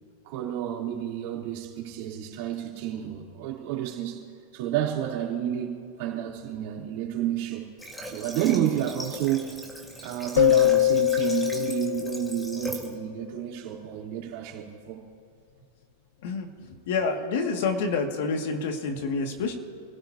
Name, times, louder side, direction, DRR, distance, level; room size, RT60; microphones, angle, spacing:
voice 1, 0.2-4.2 4.5-7.7 8.1-9.5 10.0-15.0, right 11 dB, 50° right, -3 dB, 3.6 m, -30 dB
Water / Water tap faucet, 7.8-12.9, right 1 dB, 5° left, 2.0 m, -40 dB
sound 1, 10.4-13.0, left 13 dB, 80° left, 0.5 m, -23 dB
voice 2, 16.2-19.6, left 4 dB, 60° left, 2 dB, 2.3 m, -28 dB
29.0 x 17.0 x 2.9 m, 2.2 s
supercardioid pair, 160°, 0 cm